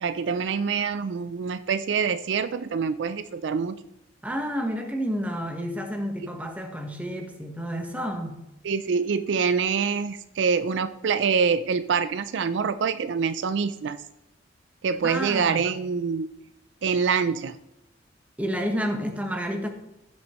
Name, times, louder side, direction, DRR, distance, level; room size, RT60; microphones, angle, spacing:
voice 1, 0.0-3.8 8.6-14.0 14.8-16.3 16.8-17.6, right 6 dB, 65° right, 13 dB, 0.4 m, -25 dB
voice 2, 4.2-8.4 15.0-15.7 18.4-19.7, equal, 10° right, 3 dB, 1.1 m, -30 dB
15.0 x 6.4 x 3.0 m, 0.92 s
head